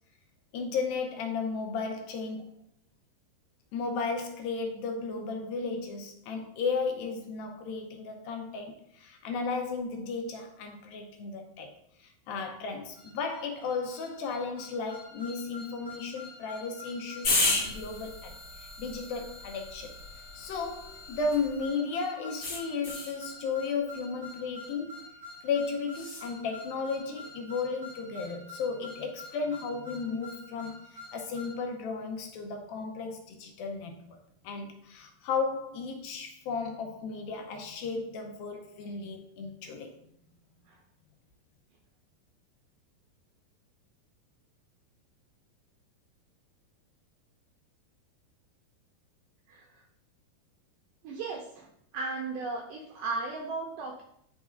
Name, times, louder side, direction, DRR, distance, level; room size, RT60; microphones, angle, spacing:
voice 1, 0.5-2.5 3.7-11.7 12.0-19.9 20.3-25.0 25.4-34.2 34.4-39.9, left 4 dB, 75° left, 3 dB, 2.4 m, -34 dB
sound 1, 12.9-31.6, left 2 dB, 45° right, 0.4 m, -48 dB
sound 2, 17.2-21.6 22.4-23.2 25.9-26.3, left 3 dB, 50° left, 1.1 m, -33 dB
voice 2, 51.0-51.7 51.9-54.0, right 3 dB, 90° right, 1 dB, 1.9 m, -35 dB
11.0 x 4.0 x 2.4 m, 0.72 s
omnidirectional pair, 4.5 m